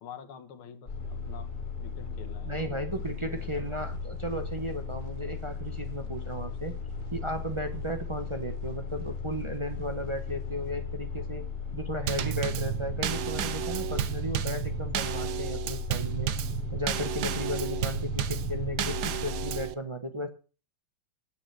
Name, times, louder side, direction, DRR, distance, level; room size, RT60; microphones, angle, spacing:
voice 1, 0.0-1.5 1.8-3.8, left 8 dB, 75° left, 8 dB, 2.1 m, -48 dB
sound 1, 0.9-19.6, left 6 dB, 45° left, 2.5 m, -36 dB
voice 2, 2.4-6.7 7.1-11.4 11.7-16.3 16.7-20.3, equal, 25° right, 6 dB, 0.6 m, -35 dB
sound 2, 2.9-10.7, left 1 dB, 30° left, 1.8 m, -53 dB
Drum kit / Snare drum / Bass drum, 12.1-19.7, right 12 dB, 65° right, 1.1 m, -32 dB
9.0 x 7.9 x 7.6 m, 0.36 s
omnidirectional pair, 2.3 m